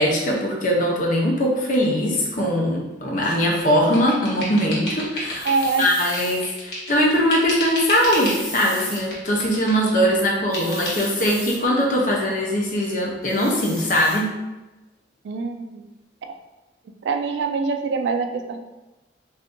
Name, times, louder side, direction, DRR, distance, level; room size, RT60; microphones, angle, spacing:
voice 1, 0.0-5.5 5.8-14.3, equal, 45° left, -2 dB, 0.6 m, -21 dB
sound 1, 3.3-7.0 7.3-8.4 8.8-10.0 10.5-11.1, left 1 dB, 65° left, 1.1 m, -31 dB
sound 2, 5.3-6.4 7.8-9.0 10.5-11.6 13.2-14.2, right 1 dB, 5° left, 0.7 m, -35 dB
voice 2, 5.4-5.9 15.2-15.9 16.2-16.3 17.0-18.6, right 4 dB, 70° right, 6 dB, 0.3 m, -24 dB
2.6 x 2.5 x 3.6 m, 1.1 s
head